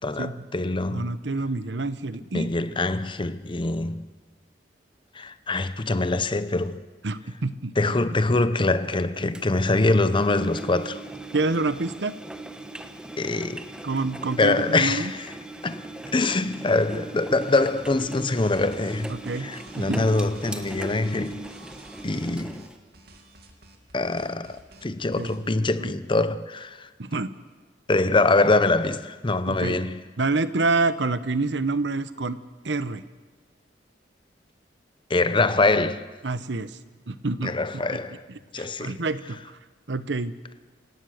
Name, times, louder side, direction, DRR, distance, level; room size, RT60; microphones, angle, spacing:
voice 1, 0.0-1.1 2.3-4.0 5.1-6.8 7.8-11.0 13.2-13.6 14.4-15.3 15.6-15.9 16.1-21.5 22.0-22.7 23.9-26.9 27.9-30.0 35.1-36.1 37.4-38.2 38.5-39.0, left 2 dB, 30° left, 0.8 m, -24 dB
voice 2, 0.9-2.5 7.0-7.7 11.3-12.1 13.8-15.1 19.1-19.5 19.7-20.1 25.2-25.5 25.8-25.9 27.0-27.3 29.5-29.8 30.2-32.4 32.6-33.0 36.2-36.7 37.1-37.5 38.5-39.4 39.9-40.3, right 3 dB, 75° right, 0.9 m, -27 dB
Engine, 9.3-22.8, right 2 dB, 5° right, 1.1 m, -39 dB
sound 1, 17.9-25.4, right 2 dB, 60° right, 2.6 m, -50 dB
27.0 x 17.5 x 6.5 m
head